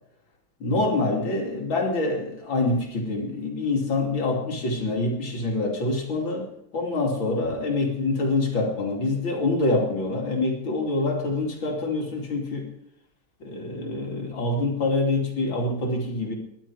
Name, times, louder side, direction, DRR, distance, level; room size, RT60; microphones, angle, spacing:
voice 1, 0.6-6.5 6.7-12.7 13.4-16.3, left 2 dB, 75° left, 0 dB, 3.4 m, -26 dB
19.5 x 11.0 x 4.8 m, 0.80 s
omnidirectional pair, 2.2 m